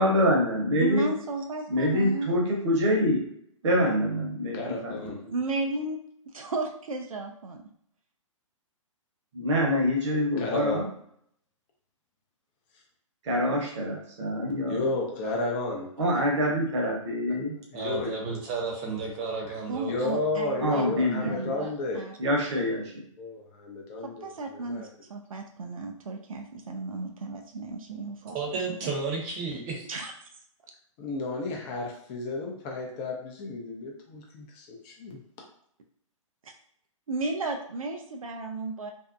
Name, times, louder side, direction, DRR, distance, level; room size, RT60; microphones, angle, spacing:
voice 1, 0.0-1.1 1.7-3.2 3.6-5.1 9.3-10.9 13.2-14.8 16.0-17.6 20.6-21.5 22.2-22.9, equal, 60° right, -1 dB, 1.0 m, -25 dB
voice 2, 0.8-2.3 5.3-6.0 6.3-7.6 19.7-22.2 24.0-28.4 28.7-28.8 29.9-30.1 36.4-36.5 37.1-38.9, right 3 dB, 85° right, 3 dB, 0.4 m, -34 dB
voice 3, 4.5-5.2 10.4-10.9 14.7-15.9 17.7-18.4 19.9-22.1 23.2-24.9 31.0-35.2, left 2 dB, 25° left, 0 dB, 0.5 m, -32 dB
voice 4, 17.7-20.3 28.2-29.9, right 4 dB, 35° right, -1 dB, 0.8 m, -33 dB
2.6 x 2.1 x 2.5 m, 0.67 s
hypercardioid pair, 130°, 17 cm